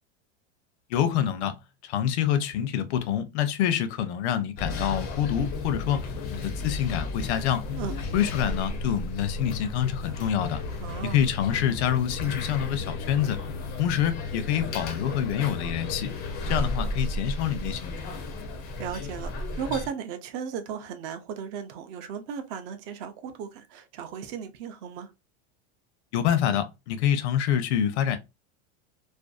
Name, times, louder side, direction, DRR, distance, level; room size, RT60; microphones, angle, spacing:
voice 1, 0.9-1.5 1.8-7.7 8.1-10.6 11.0-13.4 13.8-16.2 16.5-18.1 26.1-28.2, left 9 dB, 70° left, 0.6 m, -26 dB
sound 1, 4.6-19.9, left 2 dB, 30° left, 0.4 m, -33 dB
voice 2, 10.8-11.2 18.8-25.1, right 7 dB, 40° right, 0.4 m, -35 dB
2.5 x 2.2 x 2.3 m
supercardioid pair, 155°, 34 cm